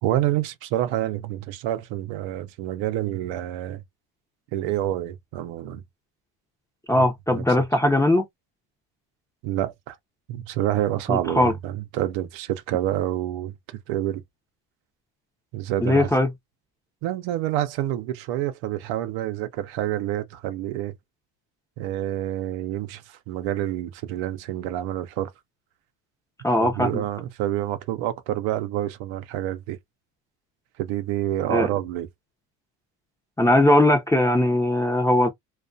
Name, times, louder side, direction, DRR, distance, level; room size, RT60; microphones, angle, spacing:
voice 1, 0.0-3.8 4.5-5.8 6.9-7.4 9.4-10.0 10.3-14.2 15.5-16.1 17.0-20.9 21.8-25.3 26.6-29.8 30.8-32.1, right 13 dB, 80° right, 0.6 m, -28 dB
voice 2, 6.9-8.2 11.1-11.5 15.8-16.3 26.4-27.0 31.5-31.7 33.4-35.3, left 1 dB, 5° left, 0.5 m, -20 dB
2.3 x 2.2 x 2.5 m
cardioid pair, 110°, 46 cm